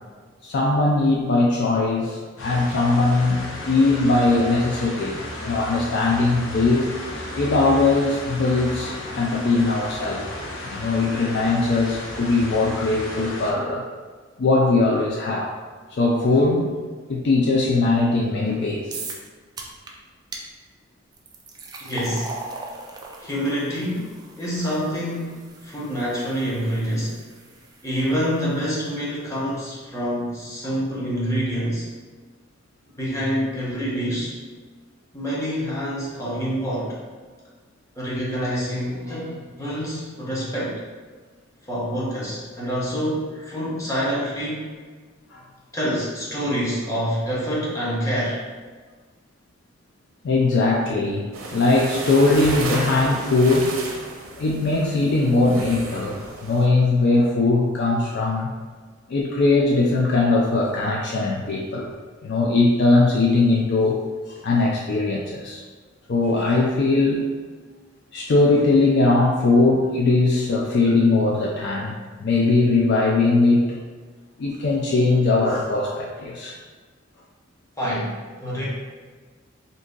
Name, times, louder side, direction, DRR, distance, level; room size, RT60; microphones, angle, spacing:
voice 1, 0.4-6.9 7.4-10.2 10.7-13.8 14.4-15.5 15.9-16.7 17.1-19.0 30.6-30.7 45.3-45.4 50.2-51.3 51.5-53.7 54.4-58.5 59.1-61.9 62.2-64.0 64.4-65.6 66.1-67.2 68.1-73.8 74.4-76.6, left 3 dB, 55° left, -1 dB, 0.4 m, -20 dB
sound 1, 2.4-13.5, left 1 dB, 80° left, 0.7 m, -34 dB
sound 2, 18.9-19.3 19.6-19.9 20.3-20.4 21.1-28.3, right 3 dB, 20° right, 0.3 m, -39 dB
voice 2, 21.8-22.3 23.2-24.1 24.4-27.2 27.8-31.9 33.0-34.3 35.1-37.0 38.0-40.8 41.6-44.7 45.7-48.4 77.8-78.7, equal, 15° left, -7 dB, 0.9 m, -26 dB
sound 3, 51.3-56.7, right 2 dB, 85° right, 0.6 m, -33 dB
2.7 x 2.5 x 3.7 m, 1.5 s
head